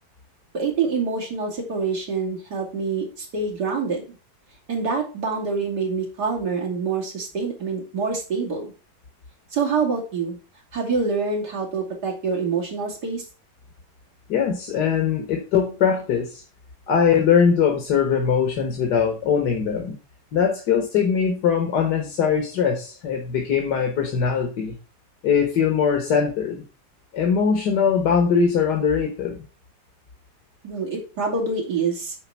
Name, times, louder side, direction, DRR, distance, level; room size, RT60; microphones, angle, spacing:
voice 1, 0.5-4.1 4.7-8.7 9.5-10.4 10.7-13.2 30.6-32.2, right 4 dB, 80° right, -1 dB, 3.4 m, -26 dB
voice 2, 14.3-16.4 16.9-19.9 20.3-24.7 25.2-26.6 27.1-29.4, left 6 dB, 85° left, 3 dB, 1.9 m, -21 dB
9.7 x 4.2 x 5.8 m, 0.34 s
omnidirectional pair, 1.8 m